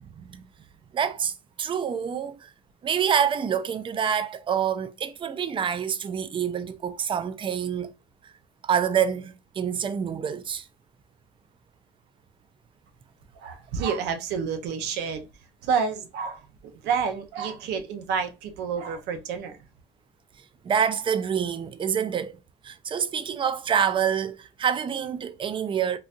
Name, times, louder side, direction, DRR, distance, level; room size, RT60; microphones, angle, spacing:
voice 1, 0.9-2.5 2.8-7.9 8.6-10.6 20.6-22.4 22.6-26.0, right 8 dB, 30° right, 0.4 m, -27 dB
voice 2, 13.4-15.3 15.6-19.6, right 6 dB, 80° right, 0.7 m, -29 dB
3.8 x 2.7 x 2.4 m
cardioid pair, 110°, 17 cm